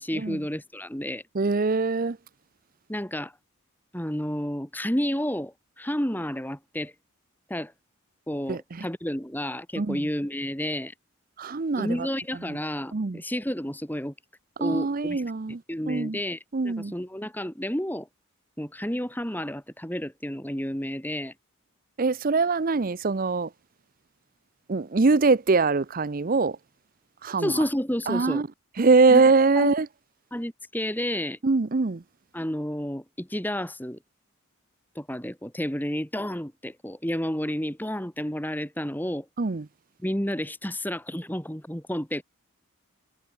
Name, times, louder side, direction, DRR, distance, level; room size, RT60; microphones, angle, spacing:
voice 1, 0.0-1.2 2.9-3.3 3.9-6.9 7.5-7.7 8.3-10.9 11.7-14.1 14.6-15.2 15.7-16.4 16.6-18.1 18.6-21.3 27.4-28.4 29.1-29.2 29.6-29.7 30.3-31.4 32.3-34.0 35.0-39.3 40.0-42.2, equal, 10° left, 2.5 m, -30 dB
voice 2, 1.3-2.2 8.5-8.9 9.8-10.1 11.4-12.1 12.5-12.6 12.9-13.2 14.6-15.6 15.9-16.2 16.5-16.9 22.0-23.5 24.7-26.6 27.2-27.6 28.1-28.5 28.8-29.9 31.4-32.0 39.4-39.7, right 3 dB, 40° right, 0.6 m, -23 dB
head